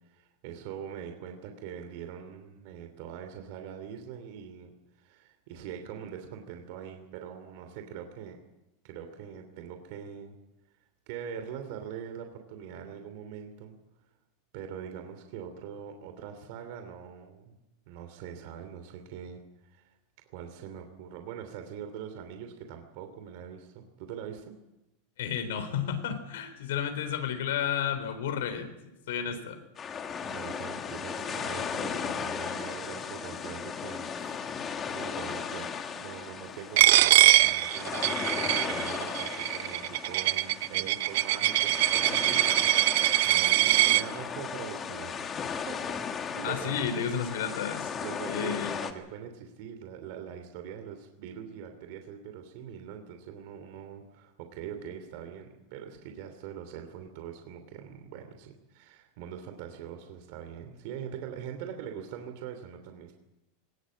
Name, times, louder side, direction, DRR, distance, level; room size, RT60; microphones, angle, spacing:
voice 1, 0.1-8.4 8.8-10.4 11.1-13.7 14.5-17.6 17.9-19.9 20.3-24.5 30.3-34.5 34.9-42.9 43.2-45.9 46.3-46.9 48.0-63.1, right 8 dB, 50° right, 6 dB, 2.9 m, -43 dB
voice 2, 25.2-28.7 29.1-29.6 46.4-48.0 48.2-48.8, left 8 dB, 90° left, 7 dB, 3.9 m, -32 dB
sound 1, 29.8-48.9, left 6 dB, 20° left, 1.5 m, -36 dB
Coin (dropping), 36.8-44.0, right 16 dB, 65° right, 0.7 m, -23 dB
21.0 x 19.5 x 8.6 m, 0.94 s
supercardioid pair, 175°, 0 cm